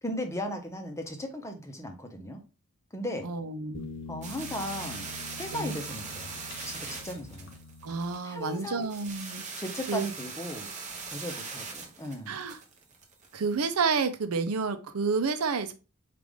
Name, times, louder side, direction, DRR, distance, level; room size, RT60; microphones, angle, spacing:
voice 1, 0.0-2.4 2.9-3.3 4.1-5.1 5.4-6.4 6.6-7.5 8.2-8.9 9.6-10.7 11.1-12.3, left 1 dB, 15° left, 5 dB, 0.7 m, -36 dB
voice 2, 3.2-3.8 5.5-5.7 7.8-9.4 9.9-10.1 12.3-12.6 13.3-15.7, right 4 dB, 90° right, 10 dB, 0.6 m, -29 dB
sound 1, 3.7-8.7, left 4 dB, 55° left, 0.5 m, -45 dB
sound 2, 4.2-13.6, right 4 dB, 35° right, 0.8 m, -41 dB
4.8 x 2.5 x 3.5 m, 0.31 s
head